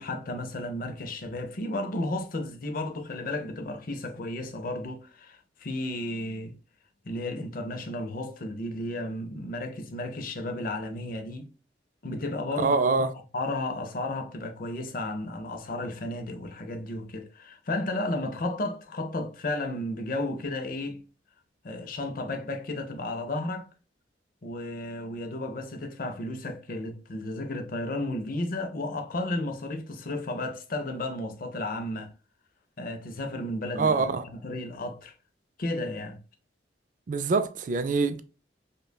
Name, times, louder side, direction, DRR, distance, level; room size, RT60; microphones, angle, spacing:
voice 1, 0.0-6.5 7.0-11.5 12.0-13.1 13.3-21.0 21.6-23.7 24.4-32.1 32.8-35.1 35.6-36.2, left 1 dB, 50° left, 0.6 m, -33 dB
voice 2, 12.6-13.1 33.8-34.2 37.1-38.2, right 4 dB, 45° right, 0.3 m, -24 dB
5.2 x 2.2 x 2.2 m
head